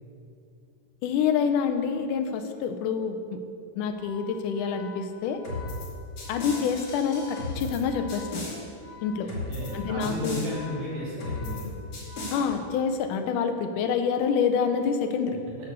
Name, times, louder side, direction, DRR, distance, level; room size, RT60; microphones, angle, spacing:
voice 1, 1.0-3.2 3.8-5.4 6.3-8.5 9.0-9.3 9.7-10.5 12.3-15.4, left 6 dB, 85° left, 7 dB, 2.2 m, -27 dB
Organ, 3.9-13.0, left 7 dB, 25° right, 2.5 m, -47 dB
sound 1, 5.4-5.9 6.2-7.8 8.1-8.6 9.3-9.7 10.0-10.5 11.2-11.6 11.9-12.4, left 2 dB, 50° left, 3.6 m, -35 dB
voice 2, 9.2-11.7, equal, 80° right, -6 dB, 4.3 m, -34 dB
8.1 x 8.0 x 6.7 m, 2.4 s
omnidirectional pair, 3.6 m